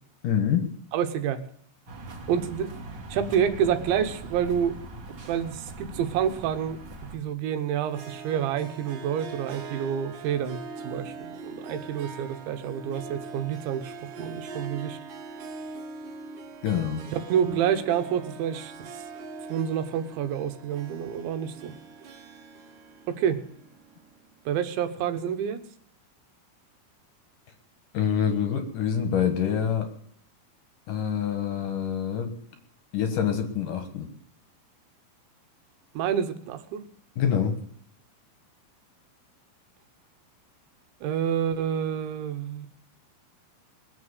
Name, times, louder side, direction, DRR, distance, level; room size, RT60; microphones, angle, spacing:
voice 1, 0.2-0.7 16.6-17.0 27.9-29.9 30.9-32.3 32.9-34.1 37.2-37.5, left 8 dB, 60° left, 7 dB, 2.3 m, -26 dB
voice 2, 0.9-1.4 2.3-2.8 3.1-4.8 5.3-6.8 7.1-15.0 17.1-18.7 19.5-21.7 23.1-23.4 24.5-25.6 36.0-36.8 41.0-42.7, right 8 dB, 75° right, 8 dB, 3.4 m, -28 dB
sound 1, 1.9-7.2, right 2 dB, 30° right, 2.3 m, -41 dB
Harp, 7.8-24.3, right 4 dB, 60° right, 2.5 m, -42 dB
21.5 x 7.6 x 8.2 m, 0.64 s
omnidirectional pair, 5.4 m